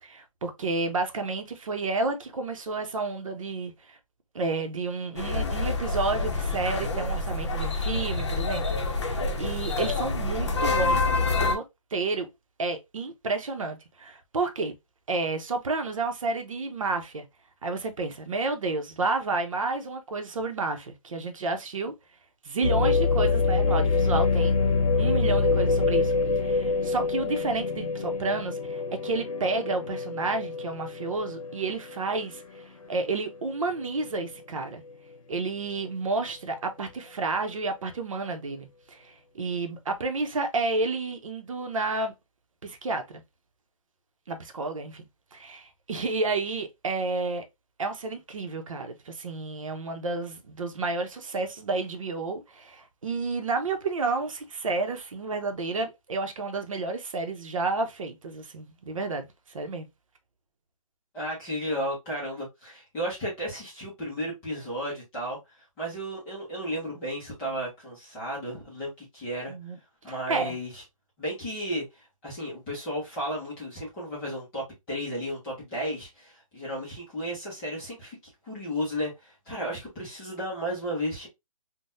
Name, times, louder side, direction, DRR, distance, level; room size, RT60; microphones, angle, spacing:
voice 1, 0.0-4.0 4.3-11.6 11.9-12.3 12.6-14.7 15.1-17.3 17.6-21.9 22.4-24.6 25.0-34.8 35.3-42.1 42.6-43.2 44.3-45.1 45.3-47.4 47.8-59.9 69.5-69.8 70.3-70.5, right 3 dB, 65° right, 0.7 m, -31 dB
sound 1, 5.2-11.6, left 3 dB, 50° left, 0.6 m, -27 dB
sound 2, 22.6-32.6 33.1-33.2 33.8-34.2, left 4 dB, 80° left, 0.8 m, -26 dB
voice 2, 61.1-69.5 70.0-70.8 71.2-81.3, equal, 5° left, 0.5 m, -34 dB
3.7 x 2.1 x 2.5 m
hypercardioid pair, 175°, 18 cm